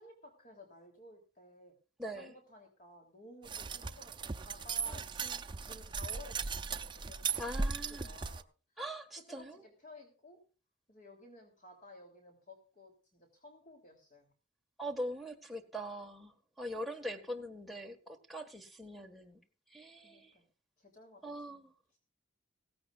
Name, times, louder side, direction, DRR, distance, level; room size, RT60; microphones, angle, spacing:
voice 1, 0.0-1.7 2.0-5.3 5.6-8.4 9.3-10.4 10.9-14.3 17.0-17.3 18.9-19.0 20.0-20.4 20.8-22.0, left 1 dB, 45° left, 3 dB, 3.3 m, -55 dB
sound 1, 3.5-8.4, right 5 dB, 25° right, 0.6 m, -38 dB
voice 2, 4.9-5.3 7.4-8.1 8.8-9.6 14.8-19.4 19.7-20.3 21.2-21.7, equal, ahead, 0 dB, 1.7 m, -42 dB
16.5 x 15.5 x 2.5 m, 0.36 s
head